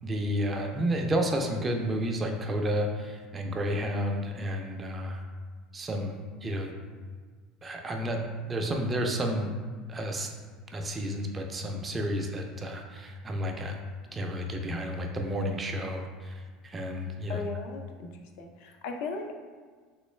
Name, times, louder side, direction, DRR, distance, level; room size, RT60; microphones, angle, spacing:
voice 1, 0.0-5.2 5.7-6.7 7.6-9.5 9.9-10.3 10.7-13.8 14.1-17.4, equal, 20° right, 3 dB, 0.4 m, -31 dB
voice 2, 17.3-18.1 18.4-19.3, left 3 dB, 70° left, 4 dB, 0.4 m, -37 dB
3.1 x 3.0 x 3.1 m, 1.5 s
supercardioid pair, 125°, 0 cm